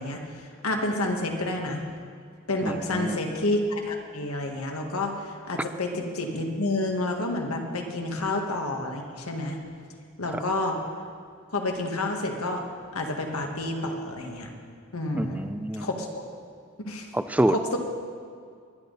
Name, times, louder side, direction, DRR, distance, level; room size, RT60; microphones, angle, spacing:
voice 1, 0.0-1.8 2.5-9.6 10.2-10.8 11.5-12.6 12.9-14.5 14.9-15.5 15.7-16.2 16.8-17.1 17.5-17.8, left 2 dB, 85° left, 2 dB, 1.7 m, -29 dB
voice 2, 2.6-3.2 10.3-10.4 15.1-15.9 17.1-17.8, right 1 dB, 5° right, 11 dB, 0.3 m, -27 dB
22.0 x 9.3 x 4.0 m, 2.2 s
head